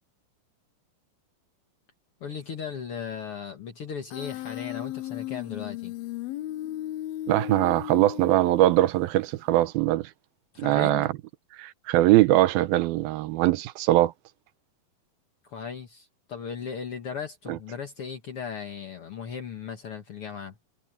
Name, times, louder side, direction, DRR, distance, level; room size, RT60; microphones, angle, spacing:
voice 1, 2.2-5.9 10.5-11.1 15.4-20.6, left 7 dB, 55° left, 1.8 m, -37 dB
Human voice, 4.1-9.1, left 14 dB, 85° left, 2.6 m, -35 dB
voice 2, 7.3-10.1 10.6-11.1 11.6-14.1 17.5-17.6, right 15 dB, 85° right, 2.6 m, -22 dB
omnidirectional pair, 4.3 m